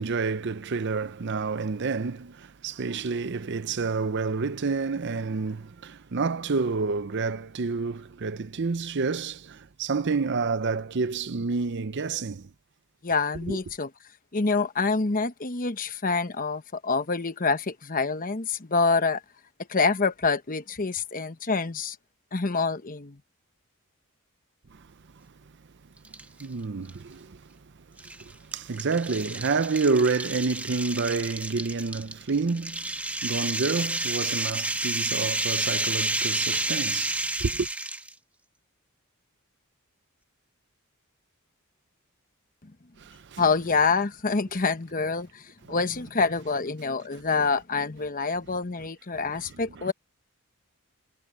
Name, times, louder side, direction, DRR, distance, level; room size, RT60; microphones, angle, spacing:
voice 1, 0.0-12.5 13.5-13.6 24.7-24.9 25.1-25.3 26.4-27.6 27.9-37.7 43.0-43.4 45.7-45.8 49.1-49.4 49.8-49.9, right 4 dB, 50° right, 0.6 m, -29 dB
voice 2, 13.0-13.9 14.3-19.2 19.7-22.0 22.3-23.2 43.4-45.4 45.7-49.9, left 4 dB, 40° left, 1.0 m, -26 dB
sound 1, 26.0-26.5 26.9-27.0 28.0-38.1, right 2 dB, 5° right, 1.3 m, -30 dB
head